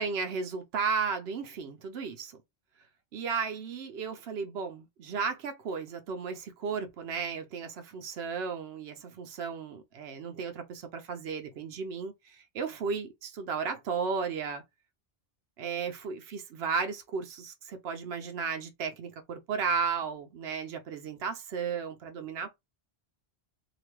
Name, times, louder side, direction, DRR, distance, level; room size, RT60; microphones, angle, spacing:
voice 1, 0.0-2.3 3.1-14.6 15.6-22.5, right 5 dB, 85° right, 0.9 m, -34 dB
2.9 x 2.2 x 3.0 m
omnidirectional pair, 1.1 m